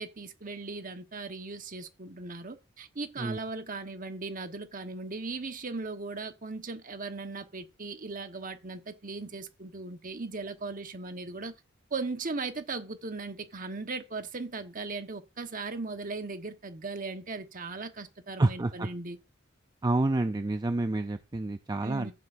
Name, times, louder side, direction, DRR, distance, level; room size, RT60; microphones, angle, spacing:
voice 1, 0.0-11.5 11.9-19.2 21.8-22.1, right 3 dB, 45° right, 1.1 m, -38 dB
voice 2, 18.4-18.9 19.8-22.1, right 2 dB, 20° right, 0.4 m, -28 dB
15.0 x 7.9 x 2.6 m
head